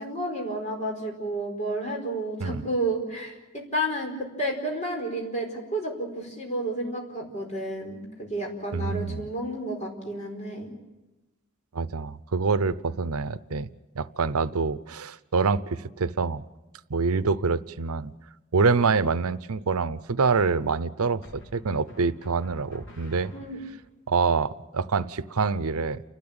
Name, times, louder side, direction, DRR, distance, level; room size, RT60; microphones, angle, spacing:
voice 1, 0.0-10.7 23.3-23.6, right 1 dB, 30° left, 1 dB, 4.8 m, -31 dB
voice 2, 8.7-9.3 11.7-13.7 13.9-16.4 16.9-18.1 18.5-23.3 24.1-26.0, right 4 dB, 90° right, 16 dB, 0.7 m, -26 dB
sound 1, 21.2-23.9, left 1 dB, 60° left, 3.9 m, -49 dB
30.0 x 12.5 x 8.8 m, 1.1 s
head